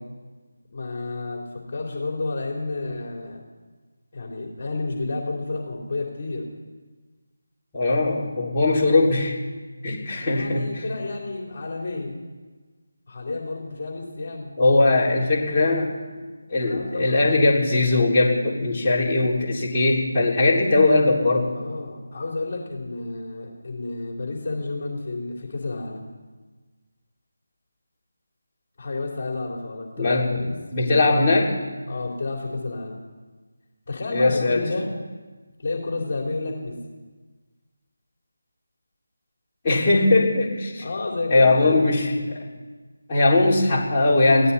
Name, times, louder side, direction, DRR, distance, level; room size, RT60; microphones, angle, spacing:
voice 1, 0.7-3.4 4.1-6.5 10.2-12.1 13.1-14.5 16.6-17.2 21.5-26.1 28.8-31.2 31.9-33.0 33.9-34.9 35.6-36.8 40.8-41.9, left 3 dB, 40° left, 0 dB, 3.6 m, -31 dB
voice 2, 7.7-9.4 9.8-10.6 14.6-15.9 16.5-21.5 30.0-30.3 30.7-31.5 34.1-34.6 39.6-40.8 41.3-42.0 43.1-44.5, left 2 dB, 20° left, -7 dB, 3.8 m, -20 dB
20.5 x 16.5 x 4.3 m, 1.4 s
figure-of-eight pair, 160°, 0 cm